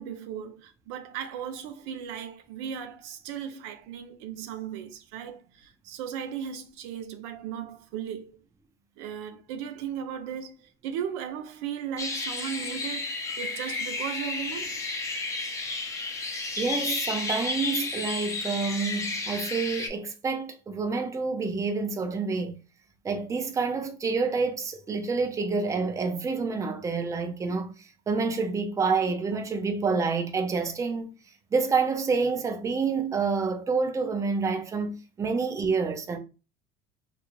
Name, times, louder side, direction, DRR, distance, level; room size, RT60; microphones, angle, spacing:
voice 1, 0.0-8.4 9.0-13.1 13.4-14.9, right 8 dB, 85° right, 0.5 m, -36 dB
sound 1, 12.0-19.9, left 3 dB, 20° left, 0.7 m, -32 dB
voice 2, 16.6-22.5 23.0-27.7 28.1-31.1 31.5-34.9 35.2-36.2, right 4 dB, 20° right, 0.6 m, -28 dB
3.2 x 2.5 x 3.0 m
supercardioid pair, 110°, 14 cm